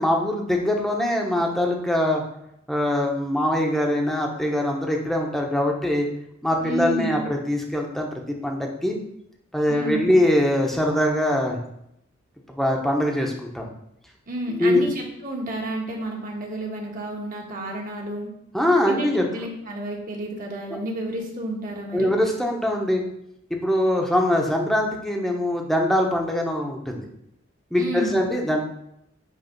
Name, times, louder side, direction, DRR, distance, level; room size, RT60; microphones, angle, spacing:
voice 1, 0.0-2.2 2.7-6.1 6.4-9.0 9.5-11.6 12.6-13.7 14.5-14.8 18.5-19.2 20.7-20.8 21.9-23.0 23.5-27.0 27.7-28.6, left 1 dB, ahead, 0 dB, 1.0 m, -22 dB
voice 2, 6.6-7.3 9.7-10.2 14.3-18.3 18.9-22.1 27.8-28.2, right 1 dB, 45° right, -1 dB, 1.6 m, -31 dB
9.0 x 3.4 x 5.4 m, 0.78 s
head